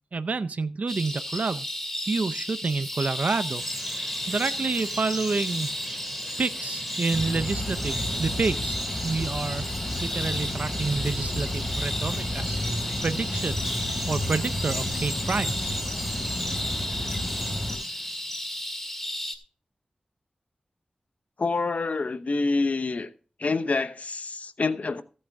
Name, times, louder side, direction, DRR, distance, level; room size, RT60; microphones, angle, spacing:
voice 1, 0.1-1.7 2.1-3.6 4.0-5.7 6.4-9.6 10.0-13.6 14.1-15.7, right 4 dB, 60° right, 0.5 m, -29 dB
sound 1, 0.9-19.4, left 1 dB, 15° left, 2.0 m, -33 dB
Chirp tweet, 2.9-18.5, right 1 dB, 10° right, 2.4 m, -39 dB
sound 2, 7.1-17.8, left 1 dB, 35° left, 4.9 m, -32 dB
voice 2, 21.4-23.1 23.4-25.0, left 3 dB, 65° left, 0.9 m, -27 dB
15.0 x 8.6 x 3.5 m
wide cardioid pair, 70°, 3 cm